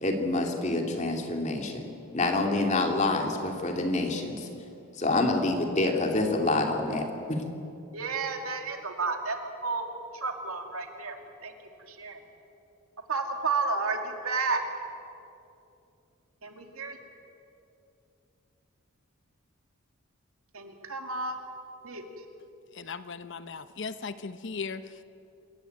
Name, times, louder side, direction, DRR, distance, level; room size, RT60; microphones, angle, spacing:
voice 1, 0.0-1.9 2.1-4.5 5.0-7.4, left 2 dB, 30° left, 3 dB, 2.5 m, -27 dB
voice 2, 7.9-9.4 9.6-9.9 10.1-11.2 11.4-11.5 11.9-12.2 13.1-14.6 16.4-17.0 20.5-21.4 21.8-22.0, right 4 dB, 80° right, 4 dB, 2.5 m, -31 dB
voice 3, 22.7-25.0, left 5 dB, 55° left, 12 dB, 0.7 m, -38 dB
27.5 x 15.0 x 9.3 m, 2.7 s
head